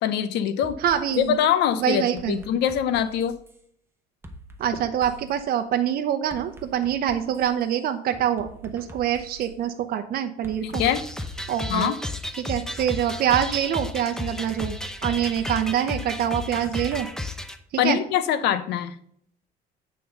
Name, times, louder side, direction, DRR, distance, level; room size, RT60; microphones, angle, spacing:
voice 1, 0.0-0.7 1.2-3.4 10.6-11.0 11.7-11.9 17.8-18.9, left 9 dB, 85° left, 13 dB, 0.8 m, -23 dB
sound 1, 0.6-1.3 2.2-3.6 4.2-5.4 6.3-7.6 8.1-9.5 10.4-11.8 12.5-13.7 14.6-17.0, right 1 dB, 15° right, 1.0 m, -45 dB
voice 2, 0.8-1.4 1.8-2.4 4.6-10.8 11.5-11.9 12.4-14.7 15.0-17.1 17.8-18.0, right 10 dB, 60° right, 6 dB, 0.7 m, -25 dB
sound 2, 10.7-17.6, left 2 dB, 5° left, 0.7 m, -33 dB
8.7 x 3.8 x 6.6 m, 0.66 s
cardioid pair, 110°, 17 cm